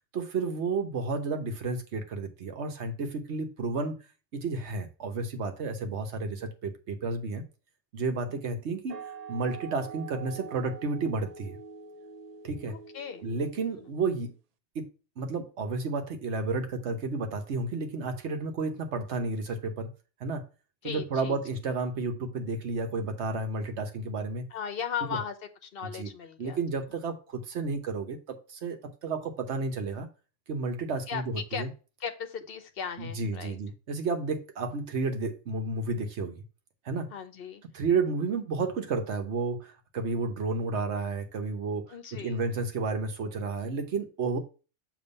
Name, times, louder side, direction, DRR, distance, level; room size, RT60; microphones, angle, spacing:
voice 1, 0.1-4.0 4.3-7.4 7.9-11.6 12.4-12.8 13.2-14.3 14.7-19.9 20.2-20.4 20.8-24.5 25.9-26.1 26.4-30.1 30.5-31.7 33.0-36.4 36.8-37.1 37.7-41.9 42.2-44.4, right 3 dB, 80° right, 1.2 m, -32 dB
voice 2, 8.3-8.6 12.7-13.2 13.7-13.9 20.8-21.4 24.5-25.4 25.6-26.6 26.9-27.0 31.1-31.7 32.0-33.6 37.1-37.6 41.9-42.4, left 7 dB, 60° left, 1.0 m, -37 dB
sound 1, 8.9-14.3, right 5 dB, 55° right, 0.4 m, -45 dB
7.0 x 3.0 x 5.2 m
omnidirectional pair, 1.1 m